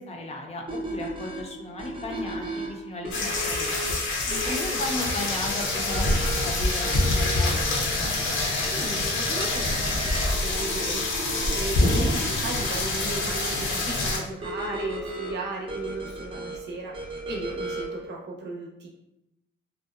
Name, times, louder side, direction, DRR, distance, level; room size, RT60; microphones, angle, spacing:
voice 1, 0.0-4.0 4.4-6.9 7.1-8.1, left 2 dB, 30° left, 1 dB, 0.5 m, -36 dB
sound 1, 0.7-18.1, right 1 dB, 25° right, 0.5 m, -36 dB
sound 2, 3.1-14.2, left 2 dB, 80° left, 0.6 m, -26 dB
voice 2, 4.3-5.0 8.7-18.9, right 2 dB, 60° right, -1 dB, 0.7 m, -36 dB
2.7 x 2.1 x 2.3 m, 0.88 s
cardioid pair, 90°, 20 cm